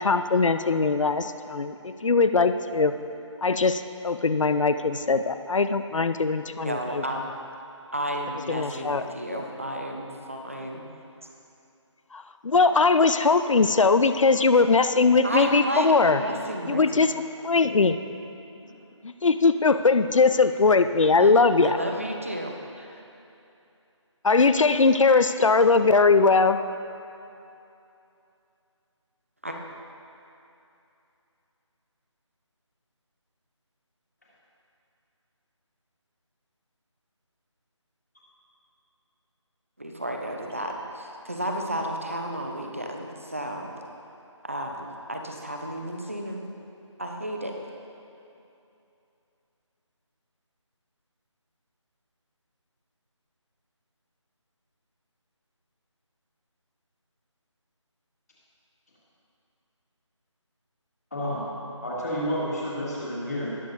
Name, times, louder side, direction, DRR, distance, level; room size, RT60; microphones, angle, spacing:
voice 1, 0.0-2.9 3.4-7.0 8.5-9.0 9.3-9.4 12.1-16.2 16.7-17.1 17.4-18.0 19.0-21.8 24.2-26.6, left 4 dB, 80° left, 10 dB, 0.5 m, -21 dB
voice 2, 6.6-7.3 7.9-10.8 15.2-16.8 21.2-21.3 21.6-23.0 29.4-29.6 39.8-43.7 44.4-46.4 47.0-47.5, right 1 dB, 25° right, 1 dB, 0.7 m, -32 dB
voice 3, 61.1-61.5 61.8-63.5, equal, 30° left, -6 dB, 2.1 m, -30 dB
18.5 x 7.0 x 2.6 m, 2.7 s
figure-of-eight pair, 180°, 16 cm